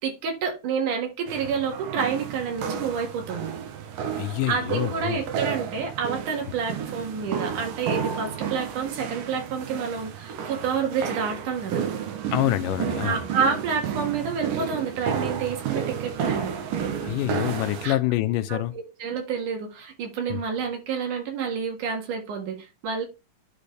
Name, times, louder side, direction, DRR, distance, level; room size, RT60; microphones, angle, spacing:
voice 1, 0.0-3.5 4.5-11.9 13.0-16.5 17.8-18.0 18.5-23.1, right 6 dB, 70° right, 3.2 m, -29 dB
sound 1, 1.3-17.9, right 7 dB, 90° right, 2.8 m, -31 dB
voice 2, 4.1-5.2 12.3-13.2 17.0-18.7 20.3-20.4, left 15 dB, 85° left, 2.3 m, -26 dB
11.0 x 4.2 x 3.3 m
omnidirectional pair, 3.8 m